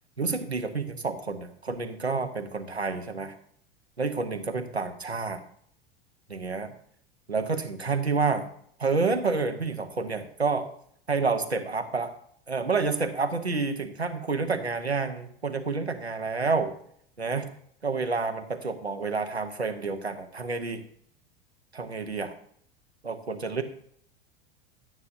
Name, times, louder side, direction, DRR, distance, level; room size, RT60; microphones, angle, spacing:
voice 1, 0.2-3.3 4.0-5.4 6.3-6.7 7.3-8.5 8.8-10.7 11.1-12.1 12.5-16.7 17.2-17.5 17.8-20.8 21.7-22.3 23.0-23.6, right 4 dB, 90° right, 8 dB, 0.9 m, -29 dB
11.5 x 9.4 x 2.7 m, 0.64 s
figure-of-eight pair, 85°, 31 cm